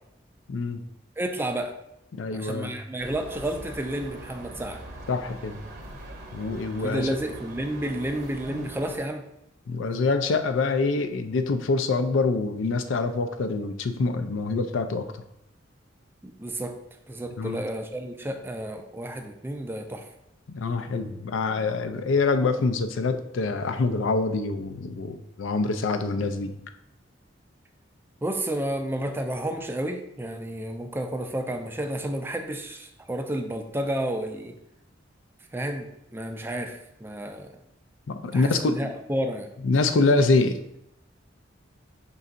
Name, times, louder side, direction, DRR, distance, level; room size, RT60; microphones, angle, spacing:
voice 1, 0.5-0.8 2.2-2.7 5.1-5.6 6.3-7.2 8.5-8.7 9.7-15.2 17.4-17.6 20.5-26.6 38.1-38.9 39.6-40.6, left 3 dB, 80° left, 8 dB, 0.4 m, -25 dB
voice 2, 1.2-1.7 2.3-4.8 6.8-9.2 16.2-16.7 17.1-20.1 28.2-34.6 35.5-37.5 38.3-39.5, right 1 dB, 10° right, 5 dB, 0.4 m, -31 dB
sound 1, 3.0-9.0, right 1 dB, 50° right, 0.8 m, -42 dB
5.4 x 3.9 x 2.5 m, 0.81 s
head